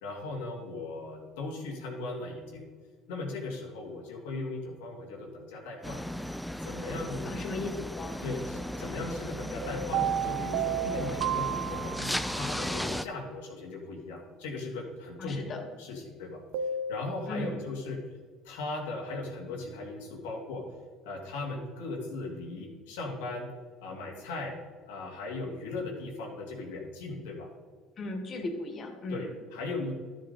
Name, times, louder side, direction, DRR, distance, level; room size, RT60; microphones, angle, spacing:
voice 1, 0.0-2.7 3.1-6.0 6.6-7.4 8.2-16.4 16.9-18.0 18.4-20.7 21.0-23.5 23.8-24.6 24.9-27.5 29.1-29.9, left 2 dB, 90° left, 1 dB, 2.3 m, -38 dB
sound 1, 5.8-13.0, equal, ahead, 0.4 m, -36 dB
voice 2, 7.3-7.7 7.9-8.2 15.2-15.6 17.3-17.6 28.0-29.3, left 2 dB, 45° left, 5 dB, 2.0 m, -36 dB
sound 2, 9.6-12.4 16.5-17.0, right 8 dB, 80° right, 0.7 m, -32 dB
12.5 x 7.5 x 4.2 m, 1.5 s
supercardioid pair, 95°, 0 cm